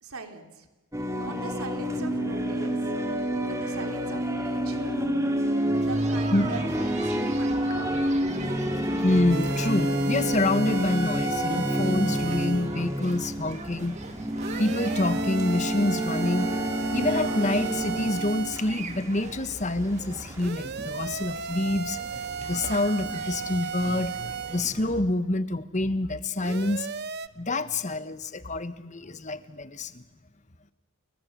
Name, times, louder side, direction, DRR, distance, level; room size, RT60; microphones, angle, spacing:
voice 1, 0.0-0.7 1.2-2.8 3.5-4.9 5.8-8.1, right 3 dB, 80° right, 6 dB, 3.2 m, -41 dB
sound 1, 0.9-20.5, equal, 15° right, 2.6 m, -29 dB
sound 2, 5.7-25.0, right 2 dB, 30° right, 2.2 m, -42 dB
voice 2, 9.0-14.0 14.6-16.5 16.9-22.0 22.3-26.9 27.4-30.0, left 2 dB, 30° left, 13 dB, 1.2 m, -27 dB
sound 3, 9.3-12.7 14.4-18.7 20.4-24.7 26.4-27.3, right 6 dB, 45° right, 0.9 m, -35 dB
29.5 x 21.5 x 7.4 m, 1.2 s
head